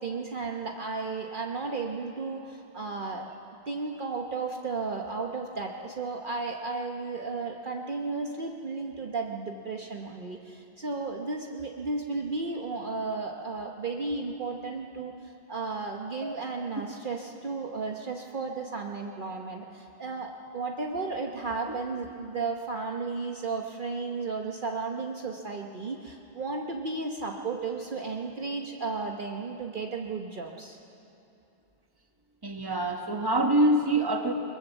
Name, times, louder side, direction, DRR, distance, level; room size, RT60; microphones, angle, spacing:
voice 1, 0.0-3.3 3.7-30.8, right 4 dB, 50° right, 1 dB, 1.2 m, -34 dB
voice 2, 32.4-34.3, right 1 dB, 20° right, 3 dB, 1.6 m, -25 dB
22.0 x 21.5 x 7.2 m, 2.7 s
omnidirectional pair, 1.1 m